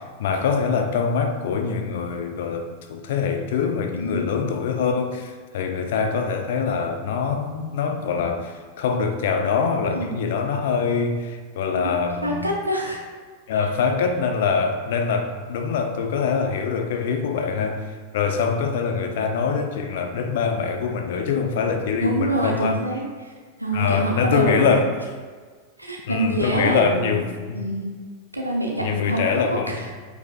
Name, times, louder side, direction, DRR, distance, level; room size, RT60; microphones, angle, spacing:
voice 1, 0.0-12.5 13.5-22.8 23.7-24.9 26.1-27.6 28.8-29.8, left 5 dB, 55° left, 6 dB, 0.7 m, -24 dB
voice 2, 9.9-10.3 11.7-13.0 22.0-23.3 23.6-24.7 25.8-27.2 27.5-27.9 28.3-29.8, right 1 dB, 85° right, -1 dB, 0.9 m, -26 dB
9.1 x 5.4 x 2.5 m, 1.5 s
figure-of-eight pair, 90°, 0 cm